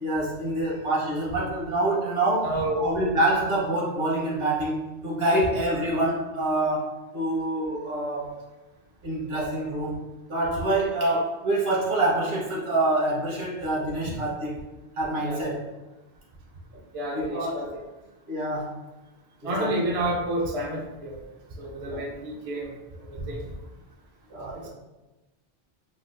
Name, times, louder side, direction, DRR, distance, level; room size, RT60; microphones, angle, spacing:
voice 1, 0.0-8.3 9.0-9.9 10.3-14.6 15.0-15.6 17.1-17.7 18.3-18.8 19.4-19.7 21.8-22.0 24.3-24.7, right 1 dB, 65° right, -5 dB, 1.3 m, -26 dB
voice 2, 2.4-2.8 15.2-15.6 16.9-17.7 19.4-21.2 21.6-22.7 23.1-23.4, right 1 dB, 45° right, -2 dB, 0.5 m, -29 dB
3.8 x 2.3 x 2.5 m, 1.1 s
omnidirectional pair, 1.1 m